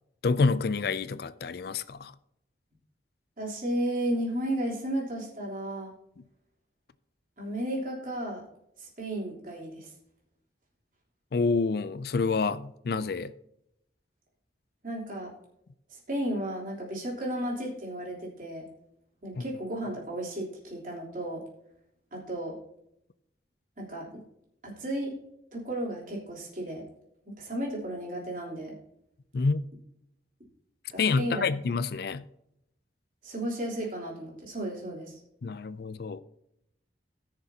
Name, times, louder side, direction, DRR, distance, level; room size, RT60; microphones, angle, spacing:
voice 1, 0.2-2.1 11.3-13.3 19.4-19.5 29.3-29.6 31.0-32.2 35.4-36.2, left 4 dB, 60° left, 0.4 m, -28 dB
voice 2, 3.4-5.9 7.4-8.4 8.8-9.9 14.8-15.3 15.9-18.6 19.2-21.4 22.1-22.6 23.8-24.2 24.6-25.1 25.5-26.8 27.2-28.7 30.9-31.5 33.2-35.2, right 1 dB, 50° right, 3.4 m, -33 dB
18.5 x 6.7 x 2.8 m
head